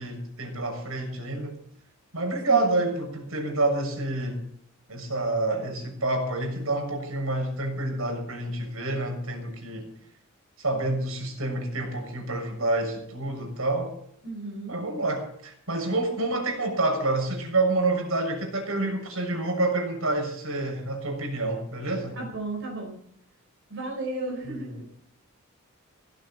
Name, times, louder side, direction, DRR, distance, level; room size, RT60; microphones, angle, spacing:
voice 1, 0.0-1.6 2.1-4.4 4.9-9.9 10.6-13.9 14.7-22.2 24.5-24.7, right 2 dB, 75° right, 3 dB, 6.6 m, -28 dB
voice 2, 2.5-2.8 14.2-14.8 22.1-22.9 23.7-24.9, right 2 dB, 60° right, -1 dB, 4.9 m, -34 dB
17.5 x 15.5 x 4.4 m, 0.68 s
head